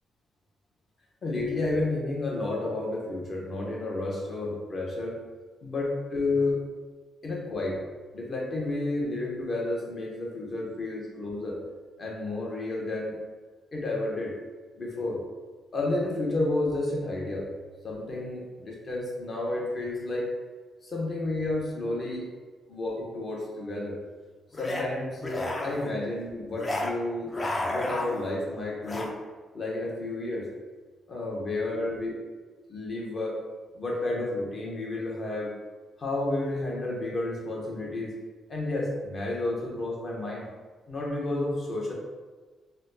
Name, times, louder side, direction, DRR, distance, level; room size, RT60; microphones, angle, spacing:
voice 1, 1.2-5.2 5.6-6.6 7.2-7.8 8.1-11.6 12.0-13.1 13.7-14.4 14.8-15.2 15.7-17.5 17.8-20.3 20.8-22.3 22.7-24.0 24.6-27.4 27.7-29.1 29.5-30.5 31.1-32.1 32.7-33.4 33.7-35.5 36.0-38.2 38.5-40.5 40.9-41.9, left 2 dB, 40° left, -2 dB, 0.8 m, -31 dB
sound 1, 24.5-24.8 25.2-25.9 26.6-26.9 27.2-28.3 28.8-29.1, left 2 dB, 25° left, 0.4 m, -32 dB
4.0 x 2.0 x 2.6 m, 1.4 s
cardioid pair, 110°, 0 cm